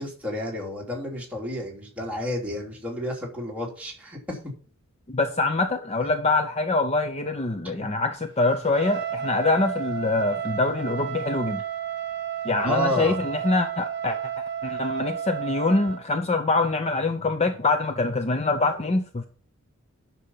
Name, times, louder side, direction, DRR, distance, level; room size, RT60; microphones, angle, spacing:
voice 1, 0.0-4.4 7.8-7.9 12.6-13.2, equal, 5° right, 2.9 m, -30 dB
voice 2, 5.1-11.6 12.4-19.3, left 3 dB, 30° left, 0.7 m, -24 dB
Trumpet, 8.7-16.0, right 9 dB, 55° right, 1.1 m, -32 dB
9.7 x 6.2 x 5.7 m
head